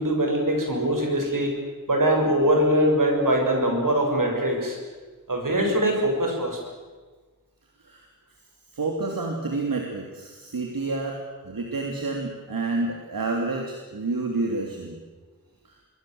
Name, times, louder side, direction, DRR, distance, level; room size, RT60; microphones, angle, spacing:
voice 1, 0.0-1.6 1.9-4.8 5.3-6.6, right 1 dB, 70° right, 2 dB, 6.9 m, -22 dB
voice 2, 8.7-11.2 11.4-15.0 15.6-15.8, right 3 dB, 85° right, 2 dB, 3.0 m, -29 dB
27.0 x 22.0 x 7.9 m, 1.4 s
wide cardioid pair, 80°, 33 cm